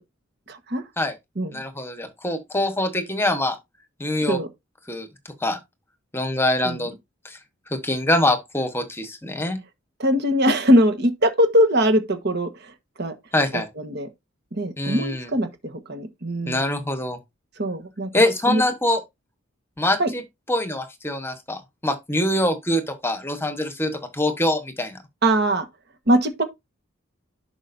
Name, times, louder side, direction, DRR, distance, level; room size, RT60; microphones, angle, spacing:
voice 1, 0.5-0.8 1.4-1.6 4.3-4.5 6.6-6.8 10.0-12.7 13.0-13.1 13.5-14.1 14.5-16.6 17.6-18.6 20.0-20.1 25.2-25.7 26.1-26.4, equal, 55° right, 1.3 m, -21 dB
voice 2, 1.5-3.6 4.0-4.4 4.9-5.1 5.4-5.6 6.1-6.9 7.2-7.4 7.7-9.6 13.3-13.7 14.8-15.3 16.4-17.2 18.1-19.0 19.8-20.2 20.5-25.0, left 1 dB, 10° left, 1.2 m, -24 dB
11.0 x 4.9 x 2.7 m
head